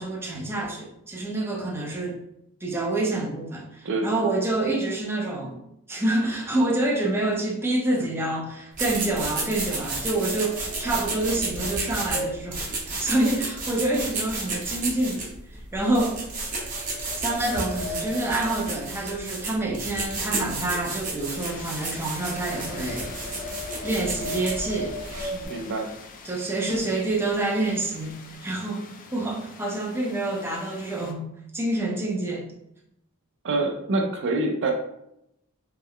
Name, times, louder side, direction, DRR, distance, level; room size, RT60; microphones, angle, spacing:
voice 1, 0.0-2.2 2.6-5.6 5.9-12.6 12.9-15.2 15.5-16.2 17.2-23.1 23.8-24.9 26.2-28.1 28.4-31.2 31.5-32.5, right 2 dB, 10° right, -2 dB, 0.5 m, -27 dB
voice 2, 3.8-4.3 25.3-26.0 26.7-26.8 33.4-34.7, right 2 dB, 55° right, 3 dB, 0.5 m, -26 dB
sound 1, 8.7-25.4, right 3 dB, 35° right, 0.9 m, -32 dB
sound 2, 9.1-14.2 14.5-14.8 15.3-15.4 16.3-19.6 19.8-26.1 26.7-26.8 27.1-27.4 27.7-28.3, left 1 dB, 75° left, 0.6 m, -39 dB
sound 3, 21.4-31.1, left 4 dB, 40° left, 0.4 m, -44 dB
3.3 x 2.1 x 3.6 m, 0.78 s
head